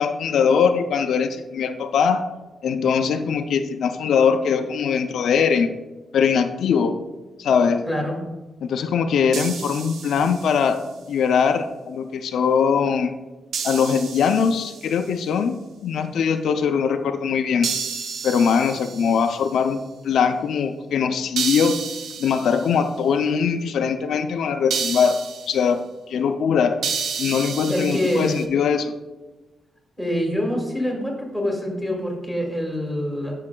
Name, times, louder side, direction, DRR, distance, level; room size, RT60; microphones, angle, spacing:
voice 1, 0.0-2.3 2.6-5.7 6.1-7.0 7.4-7.9 8.7-10.8 11.1-13.1 13.6-17.7 18.2-21.8 22.2-26.8 27.2-28.9, left 6 dB, 70° left, 7 dB, 0.4 m, -21 dB
sound 1, 9.3-10.8 13.5-15.1 17.6-19.5 21.4-22.8 24.7-25.6 26.8-28.4, right 6 dB, 75° right, 0.6 m, -31 dB
voice 2, 27.7-28.4 30.0-33.3, left 1 dB, 5° right, -2 dB, 1.4 m, -25 dB
9.7 x 6.4 x 2.2 m, 1.1 s
wide cardioid pair, 180°, 0 cm